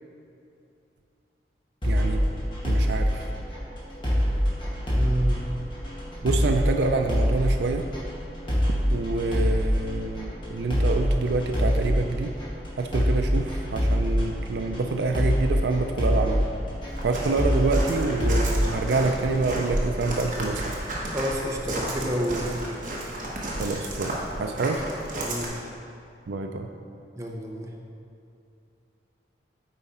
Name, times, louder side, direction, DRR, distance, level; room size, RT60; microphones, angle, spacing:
sound 1, 1.8-19.6, equal, 30° left, 1.7 m, -26 dB
voice 1, 1.8-2.3 2.6-3.3 6.2-7.9 8.9-12.3 12.8-16.5 17.0-20.7 23.6-24.8 26.3-26.7, right 3 dB, 70° right, 5 dB, 0.4 m, -27 dB
voice 2, 5.0-5.4 21.1-22.8 25.2-25.6 27.2-27.7, equal, 15° right, 0 dB, 0.7 m, -29 dB
Walk footsteps, 16.9-25.5, right 1 dB, 45° right, 1.2 m, -32 dB
8.9 x 4.8 x 4.2 m, 2.6 s
head